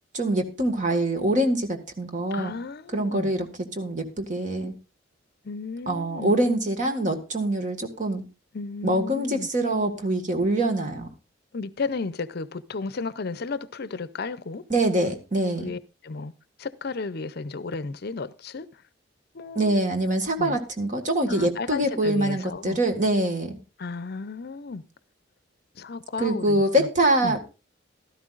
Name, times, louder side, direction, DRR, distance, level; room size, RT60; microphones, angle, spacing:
voice 1, 0.1-2.5 2.9-3.5 3.7-4.7 5.9-8.2 8.8-11.1 14.7-15.7 19.5-23.6 26.2-27.4, right 1 dB, 40° right, 1.7 m, -24 dB
voice 2, 2.3-3.3 5.4-6.3 8.5-9.5 11.5-14.6 15.6-16.3 16.6-18.7 19.3-19.7 20.4-20.6 21.3-22.8 23.8-24.8 25.8-26.9 27.2-27.3, left 4 dB, 55° left, 0.6 m, -33 dB
16.0 x 12.5 x 2.5 m
head